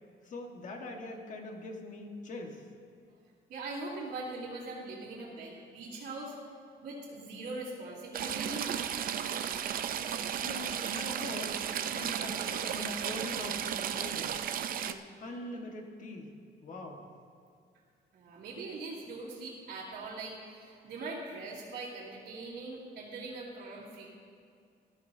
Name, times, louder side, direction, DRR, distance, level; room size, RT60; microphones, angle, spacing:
voice 1, 0.2-2.7 10.4-11.6 11.9-14.4 14.8-16.3 16.6-17.0, left 2 dB, 45° left, 2 dB, 1.5 m, -43 dB
voice 2, 3.5-6.4 6.8-8.7 18.1-24.2, right 3 dB, 75° right, -8 dB, 2.8 m, -41 dB
Stream / Trickle dribble, 8.1-14.9, right 9 dB, 50° right, 0.5 m, -34 dB
20.5 x 13.5 x 2.7 m, 2.3 s
cardioid pair, 175°, 18 cm